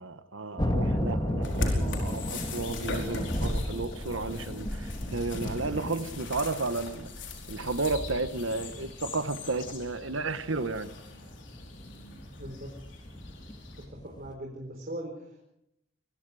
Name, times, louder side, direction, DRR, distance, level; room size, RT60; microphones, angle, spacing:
voice 1, 0.0-7.1 7.5-10.9, right 3 dB, 80° right, 1.4 m, -33 dB
sound 1, 0.6-14.3, equal, 20° left, 2.3 m, -36 dB
sound 2, 1.4-13.9, left 2 dB, 65° left, 4.7 m, -38 dB
voice 2, 12.4-12.7 13.9-15.5, right 1 dB, 50° right, 4.4 m, -40 dB
26.0 x 22.0 x 5.0 m
head